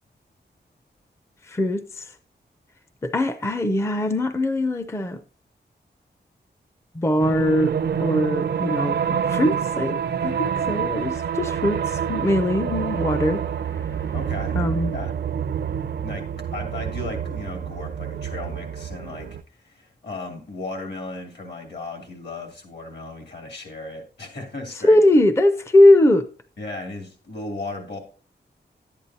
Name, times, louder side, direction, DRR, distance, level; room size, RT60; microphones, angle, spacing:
voice 1, 1.5-2.1 3.0-5.2 7.0-7.7 8.0-13.4 14.5-14.9 24.9-26.3, left 1 dB, 15° left, 0.4 m, -20 dB
sound 1, 7.2-19.4, right 8 dB, 65° right, 0.4 m, -27 dB
voice 2, 14.1-14.6 14.9-15.2 16.0-16.3 16.5-19.3 19.6-25.0 26.6-28.0, left 2 dB, 65° left, 2.6 m, -35 dB
11.0 x 8.8 x 2.7 m
wide cardioid pair, 150°, 18 cm